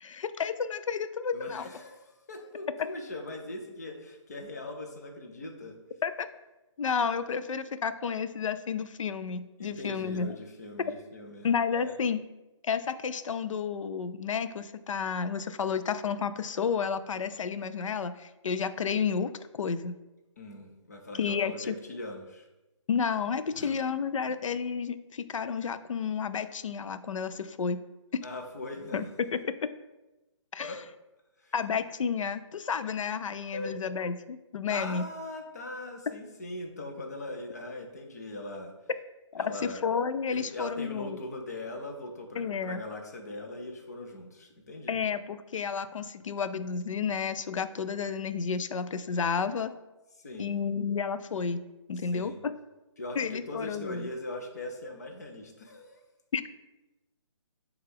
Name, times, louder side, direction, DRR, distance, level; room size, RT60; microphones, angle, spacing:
voice 1, 0.0-1.7 6.0-6.3 6.8-10.4 11.4-12.2 12.6-19.9 21.2-21.7 22.9-27.8 28.1-28.2 28.9-29.7 30.5-30.8 31.5-35.1 39.3-41.2 42.4-42.8 44.9-49.7 50.4-51.6 51.9-52.5 53.2-54.1 56.3-56.4, left 6 dB, 85° left, 11 dB, 0.4 m, -31 dB
voice 2, 1.3-5.8 9.6-12.0 20.4-22.5 23.5-23.8 28.2-29.1 30.6-30.8 31.4-31.5 33.5-33.8 34.7-38.7 39.4-39.8 40.3-45.0 50.2-50.6 52.0-52.4 53.0-56.0, left 2 dB, 30° left, 2 dB, 0.6 m, -40 dB
6.4 x 2.3 x 3.5 m, 1.0 s
hypercardioid pair, 175°, 16 cm